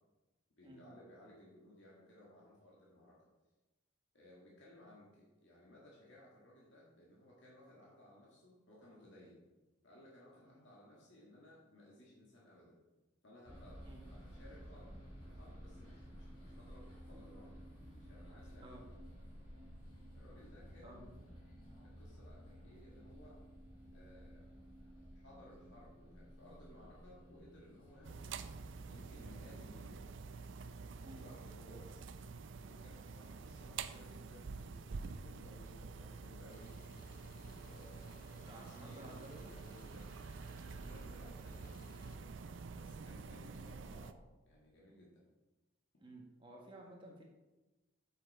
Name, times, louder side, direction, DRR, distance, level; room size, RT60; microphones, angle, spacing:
voice 1, 0.6-3.3 4.1-9.4 9.8-12.8 13.2-13.8 14.1-17.5 18.0-18.7 20.1-21.1 21.8-23.4 23.9-24.4 25.1-28.5 28.9-30.2 31.1-32.1 32.6-36.9 37.3-40.2 40.8-42.5 42.7-45.3, left 1 dB, 60° left, -5 dB, 1.9 m, -60 dB
sound 1, 13.5-29.0, equal, 25° left, 3.1 m, -54 dB
sound 2, 28.0-44.1, right 4 dB, 60° right, 0.4 m, -48 dB
sound 3, 36.5-42.2, left 3 dB, 40° left, 0.7 m, -63 dB
voice 2, 38.5-39.5 46.0-47.2, right 1 dB, 25° right, -1 dB, 1.5 m, -54 dB
7.9 x 6.7 x 4.2 m, 1.1 s
head